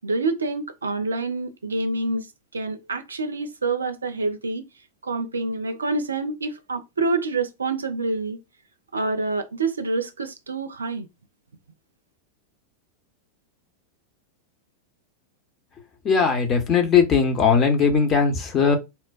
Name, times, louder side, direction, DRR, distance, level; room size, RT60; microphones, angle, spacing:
voice 1, 0.0-2.3 2.5-4.7 5.0-8.4 8.9-11.1, right 3 dB, 75° right, 0.5 m, -27 dB
voice 2, 16.0-18.8, left 6 dB, 30° left, 0.9 m, -19 dB
4.4 x 2.1 x 2.4 m
figure-of-eight pair, 90°, 0 cm